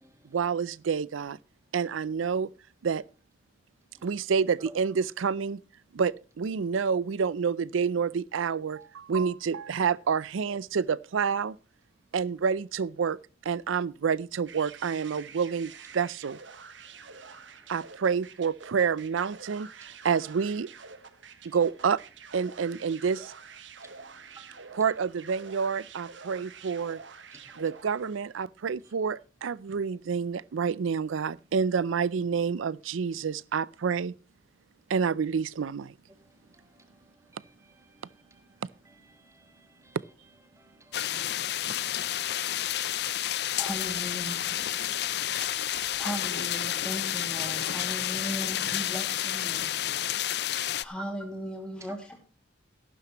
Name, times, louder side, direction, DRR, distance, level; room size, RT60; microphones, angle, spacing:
voice 1, 0.2-1.4 1.7-2.5 2.8-3.0 4.0-5.6 5.9-11.6 12.1-16.4 17.7-20.7 21.4-22.0 22.3-23.3 24.7-27.0 27.6-34.1 34.9-35.9, right 6 dB, 90° right, 0.5 m, -28 dB
sound 1, 14.5-28.3, right 5 dB, 75° right, 1.2 m, -48 dB
voice 2, 40.6-41.6 51.9-52.0, right 3 dB, 15° right, 1.6 m, -54 dB
sound 2, 40.9-50.8, left 12 dB, 55° left, 0.5 m, -30 dB
voice 3, 42.7-49.8 50.7-52.2, equal, 5° left, 2.2 m, -39 dB
14.0 x 12.0 x 3.0 m
head